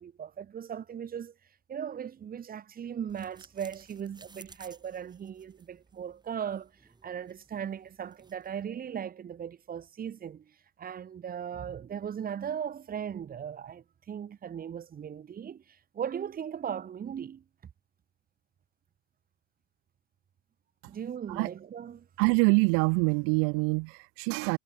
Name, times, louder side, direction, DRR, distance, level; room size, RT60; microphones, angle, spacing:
voice 1, 0.0-1.3 1.7-6.7 7.0-10.5 10.8-17.4 20.9-22.1, right 8 dB, 30° right, 3.8 m, -38 dB
sound 1, 3.1-8.6, right 3 dB, 15° right, 7.1 m, -57 dB
voice 2, 22.2-24.6, right 40 dB or more, 50° right, 0.4 m, -25 dB
hypercardioid pair, 105°, 30 cm